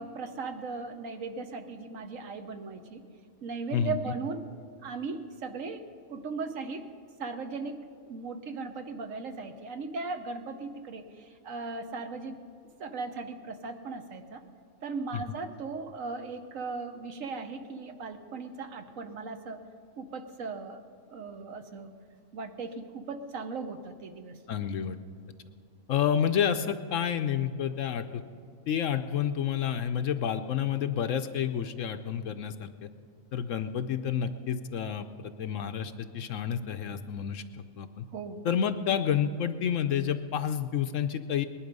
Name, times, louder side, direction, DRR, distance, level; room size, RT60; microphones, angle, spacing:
voice 1, 0.0-3.0 3.4-4.4 4.8-5.8 6.1-6.9 7.2-7.8 8.1-12.4 12.8-14.4 14.8-19.6 20.0-20.8 21.1-22.0 22.3-24.4 38.1-38.4, right 4 dB, 65° right, 8 dB, 1.2 m, -37 dB
voice 2, 24.5-25.0 25.9-28.2 28.7-32.9 33.3-38.0 38.4-41.5, left 8 dB, 65° left, 9 dB, 0.9 m, -29 dB
19.5 x 11.5 x 5.3 m, 2.4 s
omnidirectional pair, 1.5 m